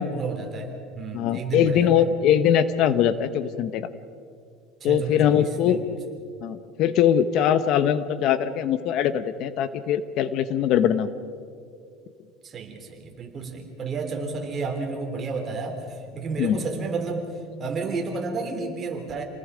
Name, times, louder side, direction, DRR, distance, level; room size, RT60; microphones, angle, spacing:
voice 1, 0.0-2.0 4.8-5.8 12.4-17.3 17.6-19.2, right 4 dB, 30° right, 2 dB, 3.6 m, -31 dB
voice 2, 1.1-3.9 4.8-5.8 6.4-11.1 16.4-16.6, left 9 dB, 55° left, 13 dB, 0.9 m, -22 dB
28.5 x 20.0 x 5.1 m, 2.3 s
supercardioid pair, 135°, 0 cm